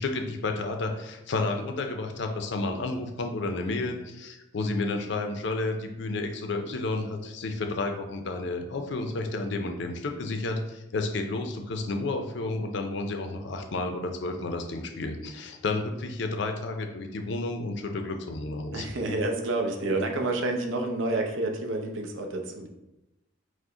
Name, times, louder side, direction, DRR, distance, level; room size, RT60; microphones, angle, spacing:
voice 1, 0.0-18.9, left 2 dB, 60° left, 5 dB, 0.5 m, -31 dB
voice 2, 18.7-22.7, right 2 dB, 70° right, 3 dB, 0.6 m, -29 dB
4.8 x 2.1 x 3.7 m, 0.94 s
head